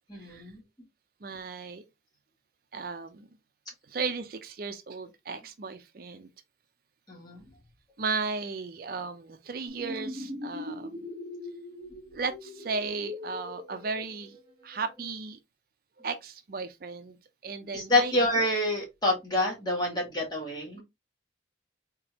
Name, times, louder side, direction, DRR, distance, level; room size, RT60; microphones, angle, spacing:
voice 1, 0.1-0.6 7.1-7.4 17.7-20.8, left 1 dB, 25° left, 1.8 m, -27 dB
voice 2, 1.2-1.8 2.7-3.3 3.9-6.3 8.0-11.1 12.1-14.4 14.6-15.4 16.0-17.2 17.4-18.2, right 4 dB, 55° right, 0.5 m, -35 dB
sound 1, 9.7-15.0, left 1 dB, 25° right, 1.1 m, -41 dB
3.9 x 3.6 x 2.9 m
head